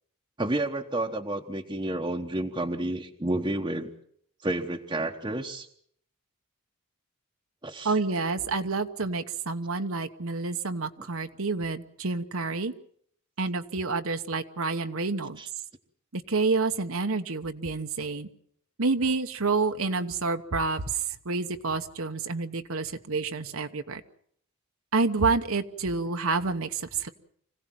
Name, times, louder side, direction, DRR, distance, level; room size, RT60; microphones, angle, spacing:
voice 1, 0.4-3.9 4.4-5.7 7.6-7.9 11.0-11.1 15.4-15.5, right 1 dB, 20° right, 0 dB, 1.1 m, -30 dB
voice 2, 7.8-12.7 13.4-15.4 16.1-18.3 18.8-20.8 21.2-24.0 24.9-27.1, right 3 dB, 65° right, 7 dB, 1.1 m, -28 dB
25.5 x 16.5 x 7.6 m, 0.66 s
head